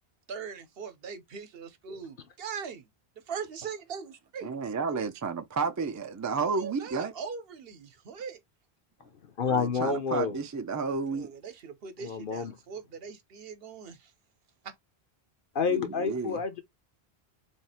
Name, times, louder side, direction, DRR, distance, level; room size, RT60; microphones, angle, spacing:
voice 1, 0.3-2.9 3.3-4.6 6.5-8.4 11.1-14.1 14.6-14.7, right 6 dB, 70° right, 1.0 m, -41 dB
voice 2, 4.4-7.1 9.5-11.3 15.7-16.4, right 4 dB, 30° right, 0.3 m, -32 dB
voice 3, 9.4-10.4 12.0-12.5 15.5-16.6, left 5 dB, 60° left, 0.8 m, -28 dB
3.4 x 2.4 x 4.2 m
omnidirectional pair, 1.1 m